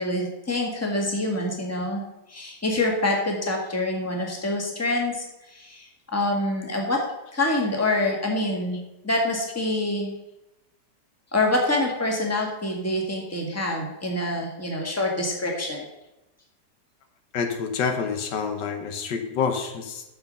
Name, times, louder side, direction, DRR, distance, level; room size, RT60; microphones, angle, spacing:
voice 1, 0.0-2.0 2.3-7.0 7.3-8.8 9.0-10.1 11.3-15.9, left 1 dB, 10° left, 0 dB, 1.7 m, -26 dB
voice 2, 17.3-20.0, left 6 dB, 80° left, 5 dB, 1.7 m, -27 dB
8.7 x 6.7 x 5.3 m, 0.94 s
omnidirectional pair, 1.9 m